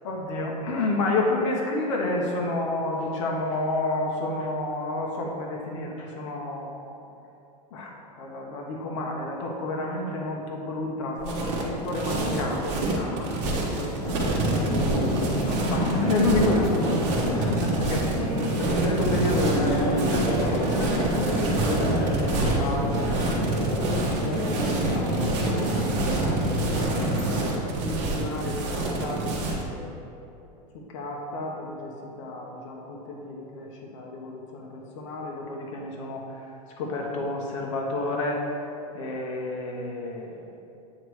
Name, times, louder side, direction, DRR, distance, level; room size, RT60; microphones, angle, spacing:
voice 1, 0.0-7.0 7.7-18.1 18.6-23.2 24.1-26.5 27.8-30.1 30.9-36.4 36.8-38.4 38.9-40.6, left 2 dB, 50° left, -1 dB, 0.9 m, -31 dB
sound 1, 11.2-29.6, right 2 dB, 50° right, 1.2 m, -28 dB
sound 2, 14.0-27.4, equal, 15° left, 0.9 m, -28 dB
8.7 x 3.1 x 4.8 m, 2.7 s
supercardioid pair, 175°, 21 cm